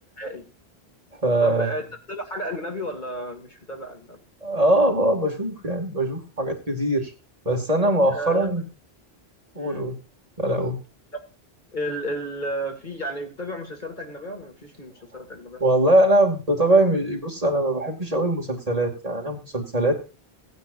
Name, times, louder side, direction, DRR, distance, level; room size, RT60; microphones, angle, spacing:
voice 1, 0.2-0.5 1.4-4.2 8.1-8.6 9.5-9.9 11.1-11.2 11.7-15.6, equal, 50° left, 3 dB, 2.5 m, -33 dB
voice 2, 1.2-1.7 4.4-7.1 7.4-8.7 9.5-9.9 10.4-10.8 15.6-20.1, right 1 dB, 35° right, 2 dB, 2.8 m, -22 dB
18.0 x 9.6 x 2.7 m, 0.32 s
omnidirectional pair, 1.0 m